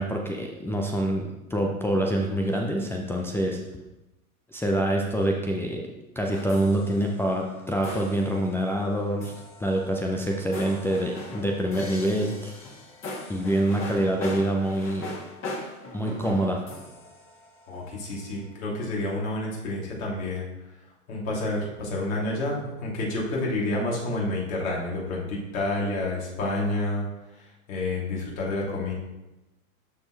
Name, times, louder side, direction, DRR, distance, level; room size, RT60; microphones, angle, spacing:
voice 1, 0.0-3.6 4.5-5.8 6.2-9.3 9.6-12.6 13.3-15.1 15.9-16.6, right 1 dB, 5° left, -1 dB, 0.5 m, -26 dB
sound 1, 6.3-18.1, left 2 dB, 30° left, 2.0 m, -40 dB
voice 2, 17.7-20.5 21.1-27.1 27.7-28.9, left 2 dB, 65° left, -4 dB, 3.0 m, -29 dB
12.0 x 4.3 x 3.3 m, 1.0 s
hypercardioid pair, 100°, 44 cm